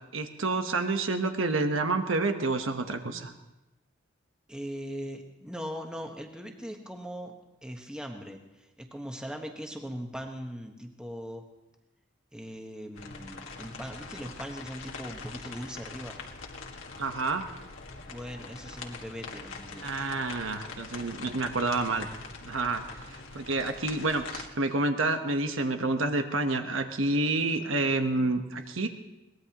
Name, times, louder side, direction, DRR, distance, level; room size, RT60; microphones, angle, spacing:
voice 1, 0.1-3.3 17.0-17.5 19.8-22.1 22.4-22.8 23.1-28.9, right 2 dB, 85° right, 6 dB, 1.2 m, -28 dB
voice 2, 4.5-7.3 7.6-11.5 12.3-16.2 18.1-19.9, equal, 5° right, 2 dB, 1.2 m, -40 dB
sound 1, 12.9-24.5, left 4 dB, 85° left, 1.8 m, -43 dB
22.5 x 18.5 x 3.0 m, 0.98 s
head